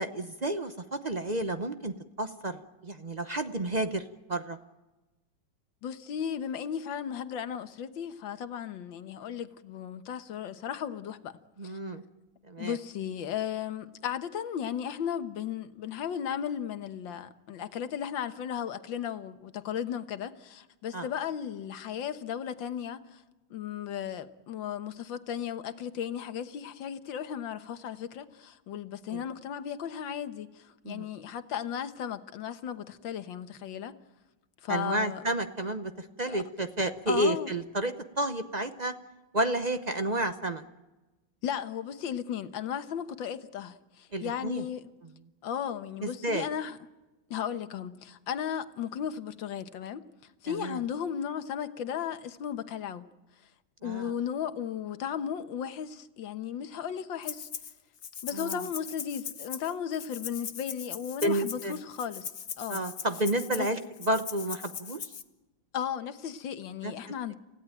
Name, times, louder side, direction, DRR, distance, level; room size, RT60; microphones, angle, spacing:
voice 1, 0.0-4.0 4.3-4.6 11.6-12.0 12.5-12.8 20.9-21.0 29.1-29.2 30.8-31.1 34.7-38.9 39.3-40.6 44.1-44.6 46.0-46.5 50.5-50.8 53.8-54.1 58.3-58.6 61.2-61.8 62.7-63.8 64.1-65.0 66.8-66.9, right 1 dB, 45° right, 0.5 m, -31 dB
voice 2, 5.8-11.4 11.6-11.8 12.6-23.2 23.5-34.0 34.6-35.2 36.3-36.4 37.1-37.5 41.4-44.9 45.4-46.8 47.3-50.1 50.4-53.1 53.8-57.5 58.2-62.3 62.6-62.8 63.5-63.7 65.7-67.3, left 8 dB, 75° left, 1.8 m, -35 dB
Rattle (instrument), 57.2-57.7 58.0-65.2, left 7 dB, 50° left, 1.4 m, -40 dB
29.0 x 16.5 x 9.1 m
omnidirectional pair, 2.1 m